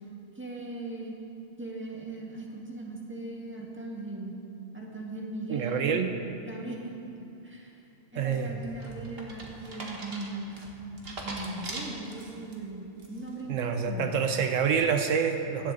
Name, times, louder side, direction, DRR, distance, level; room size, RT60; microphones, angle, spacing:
voice 1, 0.3-1.1 1.6-4.3 4.7-6.0 6.4-7.0 7.4-7.8 8.1-14.1, right 2 dB, 10° right, -2 dB, 1.7 m, -39 dB
voice 2, 5.5-6.1 8.2-8.5 13.5-15.7, right 6 dB, 80° right, 6 dB, 1.1 m, -27 dB
sound 1, 8.3-12.5 13.0-13.4, right 2 dB, 50° right, 1.7 m, -41 dB
16.5 x 11.5 x 3.9 m, 2.9 s
omnidirectional pair, 1.3 m